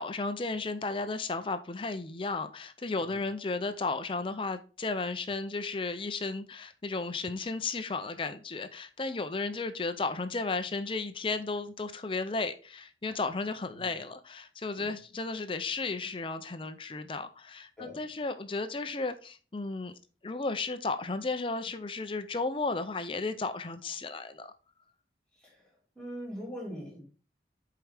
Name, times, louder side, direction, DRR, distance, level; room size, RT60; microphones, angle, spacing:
voice 1, 0.0-19.9 20.2-24.5, left 3 dB, 30° left, 0.5 m, -34 dB
voice 2, 25.4-27.0, equal, 5° left, 3.1 m, -43 dB
7.5 x 4.7 x 3.4 m
head